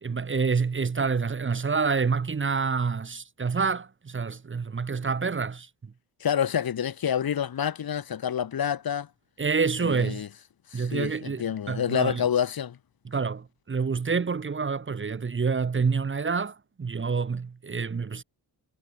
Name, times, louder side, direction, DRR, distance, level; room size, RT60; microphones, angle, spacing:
voice 1, 0.0-5.9 9.4-10.2 10.7-12.2 13.0-18.2, right 5 dB, 30° right, 1.3 m, -27 dB
voice 2, 6.2-9.1 9.8-10.3 10.7-12.8, left 9 dB, 65° left, 3.6 m, -28 dB
cardioid pair, 80°, 38 cm